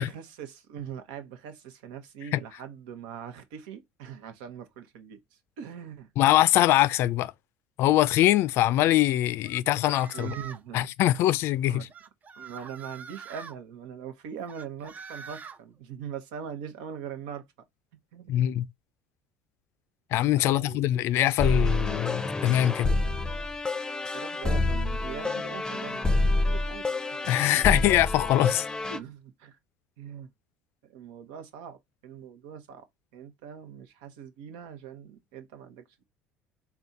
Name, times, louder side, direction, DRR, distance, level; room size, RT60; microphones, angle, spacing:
voice 1, 0.0-5.2 5.6-6.1 10.1-10.9 11.7-11.9 12.4-17.5 18.1-18.3 20.4-21.0 24.1-26.1 26.4-27.2 27.5-27.8 28.9-29.6 30.0-30.3 30.8-31.8 32.0-32.8 33.1-36.0, right 8 dB, 75° right, 1.0 m, -41 dB
voice 2, 6.2-7.3 7.8-10.3 10.7-11.9 18.3-18.7 20.1-22.9 27.2-28.7, left 14 dB, 60° left, 0.4 m, -23 dB
sound 1, 9.4-10.7 11.9-13.6 14.5-15.6, right 6 dB, 35° right, 0.6 m, -44 dB
sound 2, 21.4-29.0, left 2 dB, 15° left, 0.6 m, -28 dB
3.4 x 2.3 x 4.1 m
hypercardioid pair, 70°, 5 cm